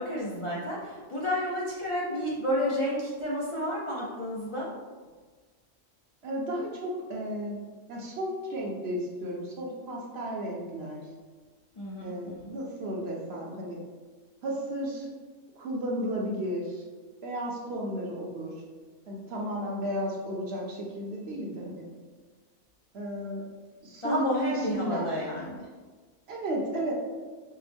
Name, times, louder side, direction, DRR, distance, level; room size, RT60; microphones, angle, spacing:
voice 1, 0.0-4.7 11.8-12.6 24.0-25.7, equal, 60° left, -7 dB, 0.3 m, -31 dB
voice 2, 6.2-7.6 7.9-11.1 12.0-13.8 14.4-15.1 15.6-16.8 17.2-18.5 19.1-21.9 22.9-23.4 23.8-25.2 26.3-26.9, equal, 60° right, -1 dB, 0.8 m, -33 dB
4.5 x 2.0 x 3.4 m, 1.4 s
omnidirectional pair, 1.4 m